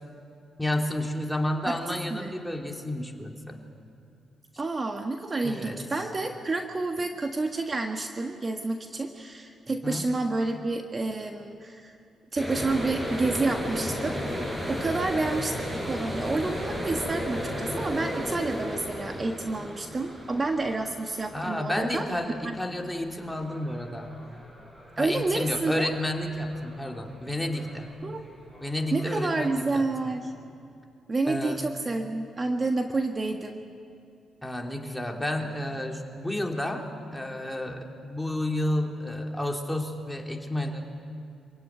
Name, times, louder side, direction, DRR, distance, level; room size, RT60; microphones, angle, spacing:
voice 1, 0.6-3.6 5.4-5.8 9.7-10.1 21.3-24.1 25.0-27.9 28.6-29.9 31.3-31.6 34.4-40.8, left 1 dB, 5° left, 1 dB, 3.2 m, -31 dB
voice 2, 4.6-12.0 12.3-22.1 22.4-22.5 25.0-25.9 28.0-28.2 28.9-30.3 31.1-33.6, right 3 dB, 35° right, 4 dB, 1.5 m, -29 dB
sound 1, 12.4-27.1 27.5-27.9 28.3-29.6, equal, 15° right, 7.0 m, -35 dB
25.5 x 16.5 x 9.5 m, 2.5 s
supercardioid pair, 60°, 0 cm